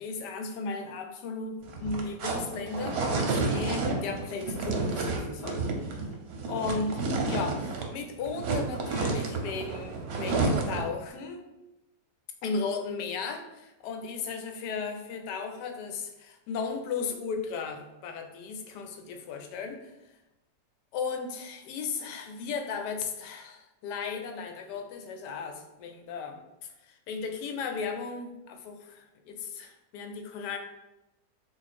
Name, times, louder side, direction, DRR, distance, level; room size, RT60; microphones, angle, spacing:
voice 1, 0.0-5.9 6.5-11.5 12.4-19.9 20.9-26.4 26.8-30.6, left 5 dB, 75° left, 5 dB, 1.1 m, -35 dB
sound 1, 1.6-8.0 8.2-10.9, right 3 dB, 65° right, 1.0 m, -30 dB
3.8 x 2.4 x 4.2 m, 0.97 s
omnidirectional pair, 1.9 m